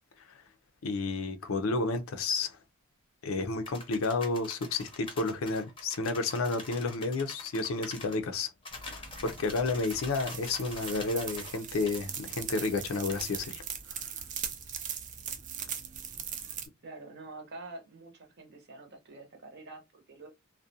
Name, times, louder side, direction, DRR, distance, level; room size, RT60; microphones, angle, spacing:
voice 1, 0.8-2.6 3.2-8.5 9.2-13.6, left 3 dB, 70° left, 0.5 m, -31 dB
sound 1, 3.6-8.2 8.6-11.6 11.8-12.0 13.1-13.3, left 3 dB, 25° left, 0.6 m, -45 dB
sound 2, 8.7-16.7, right 7 dB, 35° right, 0.4 m, -40 dB
voice 2, 16.8-20.3, right 2 dB, 50° right, 0.8 m, -47 dB
2.4 x 2.1 x 2.6 m
head